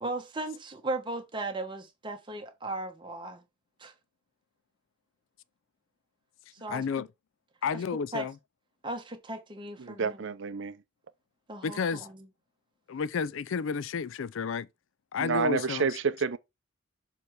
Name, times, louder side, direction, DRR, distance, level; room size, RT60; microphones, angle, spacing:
voice 1, 0.0-3.4 3.8-3.9 6.5-6.8 7.7-7.8 8.1-8.3 8.8-10.2 11.5-12.3, right 2 dB, 25° right, 1.1 m, -37 dB
voice 2, 6.7-7.1 7.6-8.3 11.6-12.1 12.9-14.7 15.1-15.8, left 5 dB, 65° left, 0.4 m, -31 dB
voice 3, 9.8-10.8 15.2-16.4, right 5 dB, 60° right, 0.5 m, -29 dB
6.9 x 3.3 x 4.5 m
head